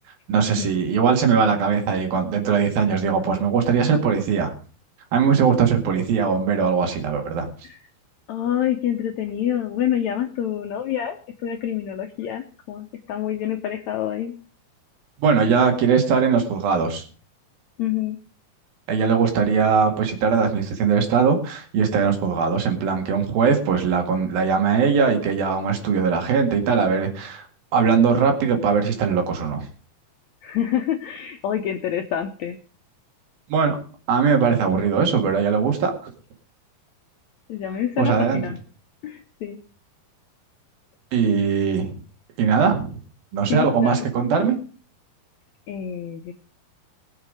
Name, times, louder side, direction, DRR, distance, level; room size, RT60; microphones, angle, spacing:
voice 1, 0.3-4.5 5.1-7.5 15.2-17.0 18.9-27.5 27.7-29.7 33.5-33.8 34.1-36.1 38.0-38.4 41.1-42.0 42.4-42.9 43.3-44.6, right 6 dB, 75° right, 4 dB, 3.9 m, -20 dB
voice 2, 8.3-14.3 17.8-18.2 30.4-32.6 37.5-38.6 39.0-39.6 43.5-44.1 45.7-46.3, left 10 dB, 75° left, 5 dB, 1.7 m, -27 dB
20.0 x 7.4 x 5.0 m, 0.39 s
omnidirectional pair, 4.2 m